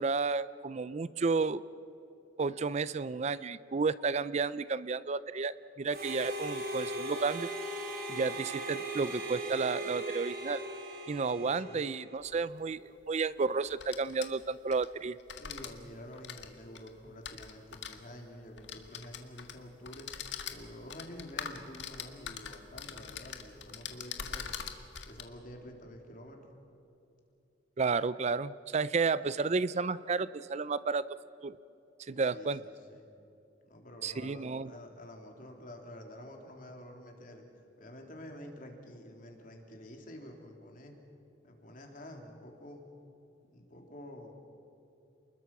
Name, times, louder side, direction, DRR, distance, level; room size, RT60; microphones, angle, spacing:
voice 1, 0.0-1.6 2.4-7.5 8.1-10.6 11.1-12.8 13.1-15.2 27.8-31.1 31.4-31.6 32.0-32.6 34.0-34.7, right 4 dB, 35° right, 17 dB, 0.4 m, -32 dB
Harmonica, 5.9-12.3, right 1 dB, 55° right, 3.9 m, -39 dB
voice 2, 11.3-11.8 15.4-20.1 20.4-24.5 25.0-26.6 32.2-33.1 33.6-37.4 37.8-40.9 41.4-42.9 43.5-44.3, left 1 dB, 45° left, 2 dB, 3.5 m, -49 dB
sound 1, 12.2-12.3 13.6-14.9 15.2-15.7 16.1-17.9 18.6-19.6 19.8-25.2, left 7 dB, 70° left, 1.8 m, -42 dB
30.0 x 21.0 x 6.1 m, 2.8 s
head